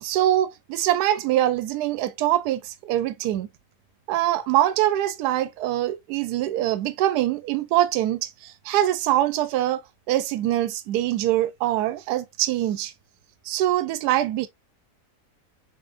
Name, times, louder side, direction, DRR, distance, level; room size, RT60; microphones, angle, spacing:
voice 1, 0.0-3.5 4.1-9.8 10.1-12.9 13.5-14.5, right 13 dB, 80° right, 1.1 m, -23 dB
4.1 x 3.7 x 2.5 m
omnidirectional pair, 1.8 m